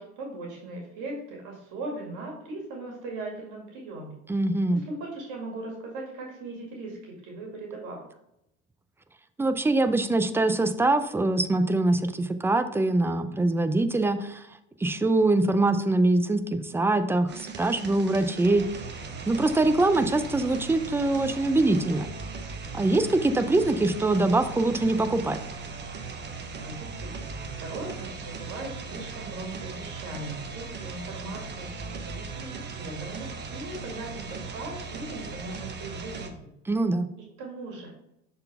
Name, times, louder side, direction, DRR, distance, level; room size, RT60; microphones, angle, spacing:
voice 1, 0.0-4.2 4.7-8.0 26.6-36.4 37.4-37.9, right 2 dB, 60° right, 0 dB, 2.1 m, -39 dB
voice 2, 4.3-4.8 9.4-14.5 14.8-18.6 19.3-22.1 22.7-25.4 36.7-37.1, right 2 dB, 5° right, 9 dB, 0.4 m, -23 dB
sound 1, 17.3-36.3, right 4 dB, 30° right, 0.9 m, -38 dB
6.7 x 4.1 x 3.4 m, 0.81 s
hypercardioid pair, 85°, 34 cm